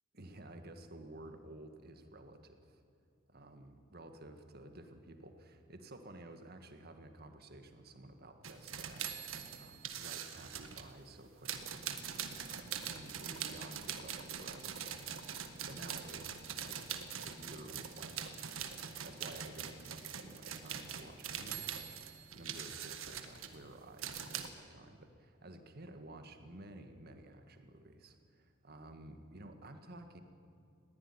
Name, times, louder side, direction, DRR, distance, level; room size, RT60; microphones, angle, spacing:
voice 1, 0.1-2.8 3.3-11.8 12.4-14.8 15.7-18.5 19.0-30.2, right 1 dB, 50° right, 6 dB, 1.7 m, -53 dB
sound 1, 8.4-10.9 11.4-24.5, right 8 dB, 85° right, 1.5 m, -43 dB
20.5 x 16.5 x 9.8 m, 2.5 s
head